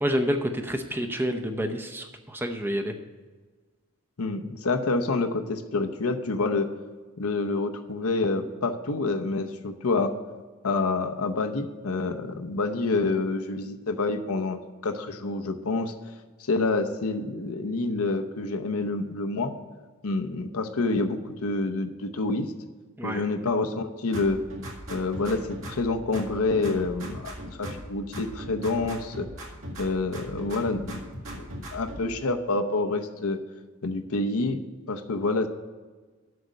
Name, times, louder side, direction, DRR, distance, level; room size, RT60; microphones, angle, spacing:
voice 1, 0.0-2.9 23.0-23.2, equal, 10° right, 5 dB, 0.6 m, -28 dB
voice 2, 4.2-6.7 7.2-10.1 10.6-15.9 16.4-19.5 20.0-22.5 23.0-24.4 24.9-29.3 29.8-31.0 31.4-33.4 33.8-34.6 34.9-35.5, left 3 dB, 80° left, 6 dB, 0.8 m, -27 dB
sound 1, 24.1-25.9 26.1-27.9 28.1-29.9 30.1-32.0, equal, 60° right, 2.1 m, -39 dB
7.9 x 6.5 x 8.1 m, 1.4 s
head